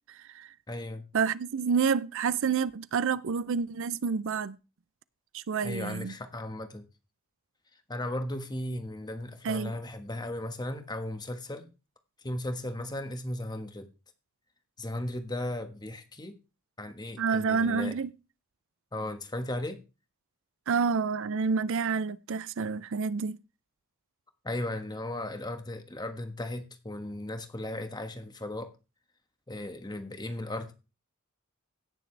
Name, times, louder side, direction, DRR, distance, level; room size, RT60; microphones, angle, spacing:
voice 1, 0.1-0.5 1.1-4.6 5.3-6.1 9.4-9.7 17.2-18.1 20.7-23.4, right 5 dB, 60° right, 0.5 m, -28 dB
voice 2, 0.7-1.0 5.6-6.8 7.9-11.7 12.2-13.9 14.8-16.3 16.8-17.9 18.9-19.8 24.4-28.7 29.5-30.7, left 1 dB, 20° left, 1.4 m, -36 dB
17.0 x 6.7 x 3.3 m
head